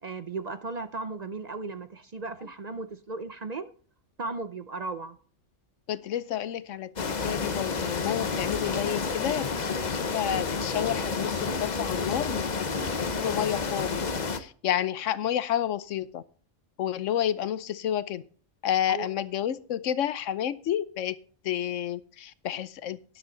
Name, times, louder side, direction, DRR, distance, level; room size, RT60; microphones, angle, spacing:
voice 1, 0.0-3.7 4.2-5.2 18.9-19.1, right 3 dB, 45° right, 0.6 m, -36 dB
voice 2, 5.9-12.5 12.9-16.2 16.8-18.2 18.6-21.1 21.4-23.0, left 10 dB, 90° left, 1.1 m, -30 dB
sound 1, 7.0-14.4, left 4 dB, 40° left, 0.9 m, -30 dB
12.5 x 10.5 x 3.9 m
omnidirectional pair, 1.3 m